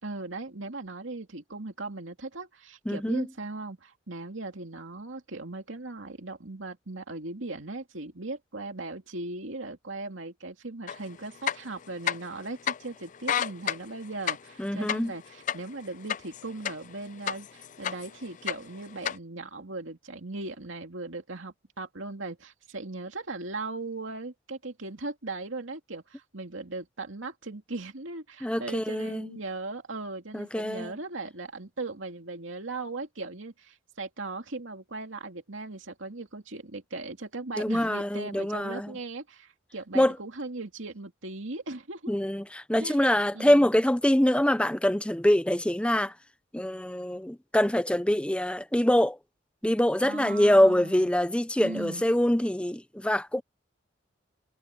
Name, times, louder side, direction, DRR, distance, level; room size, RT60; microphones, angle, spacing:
voice 1, 0.0-42.1 42.8-43.0 43.3-43.7 50.0-51.1 51.6-52.0, right 3 dB, 80° right, 2.5 m, -38 dB
voice 2, 2.9-3.3 14.6-15.1 28.4-29.3 30.3-30.9 37.6-38.9 39.9-40.2 42.1-46.1 46.5-49.2 49.6-53.4, left 1 dB, 5° left, 0.7 m, -24 dB
sound 1, 10.9-11.0 11.4-12.4 12.7-12.8 13.1-16.9 17.3-18.1 18.4-19.2, left 9 dB, 40° left, 0.4 m, -30 dB
head